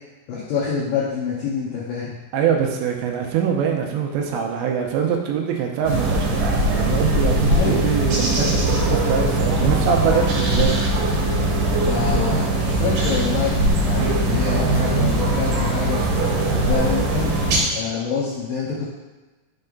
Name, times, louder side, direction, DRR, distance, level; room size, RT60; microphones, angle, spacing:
voice 1, 0.3-2.2 7.5-7.8 11.9-16.0 16.7-17.3 17.7-18.9, left 6 dB, 75° left, -6 dB, 2.2 m, -26 dB
voice 2, 2.3-10.8, right 7 dB, 90° right, 2 dB, 2.9 m, -23 dB
sound 1, 5.8-17.6, right 1 dB, 65° right, 2.1 m, -20 dB
6.9 x 3.3 x 5.2 m, 1.2 s
omnidirectional pair, 5.2 m